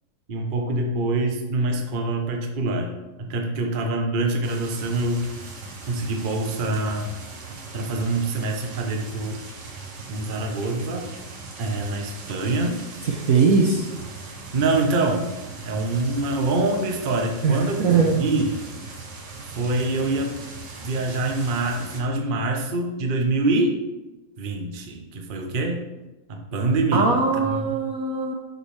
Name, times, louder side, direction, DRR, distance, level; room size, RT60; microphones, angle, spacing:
voice 1, 0.3-2.9 3.2-5.3 5.9-7.1 7.7-9.4 10.1-11.1 11.6-12.9 14.5-15.3 15.6-18.5 19.5-20.4 20.8-23.8 24.4-25.9 26.3-27.2 27.4-27.8, right 2 dB, 35° right, 2 dB, 0.9 m, -25 dB
sound 1, 4.4-22.0, right 3 dB, 80° right, 1.9 m, -39 dB
voice 2, 13.1-13.9 17.4-18.3 26.9-28.3, right 4 dB, 60° right, 1 dB, 1.1 m, -20 dB
11.0 x 5.3 x 3.3 m, 1.1 s
omnidirectional pair, 2.0 m